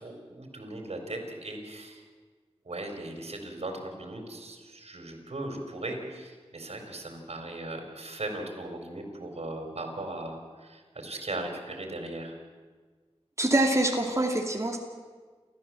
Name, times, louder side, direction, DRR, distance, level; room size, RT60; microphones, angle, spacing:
voice 1, 0.0-2.0 2.6-12.4, right 2 dB, 70° right, 3 dB, 4.2 m, -38 dB
voice 2, 13.4-14.8, right 1 dB, 25° right, 1 dB, 2.6 m, -25 dB
29.5 x 13.5 x 7.7 m, 1.4 s
wide cardioid pair, 70°, 11 cm